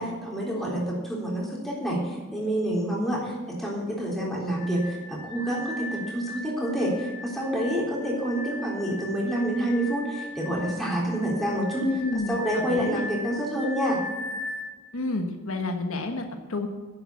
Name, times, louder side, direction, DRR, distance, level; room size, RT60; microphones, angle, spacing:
voice 1, 0.0-11.9 12.3-14.0, right 1 dB, ahead, -4 dB, 3.7 m, -28 dB
sound 1, 4.5-14.7, left 2 dB, 20° left, 1.3 m, -38 dB
voice 2, 11.8-13.0 14.9-16.7, left 2 dB, 70° left, 4 dB, 1.3 m, -30 dB
10.5 x 8.1 x 8.5 m, 1.3 s
head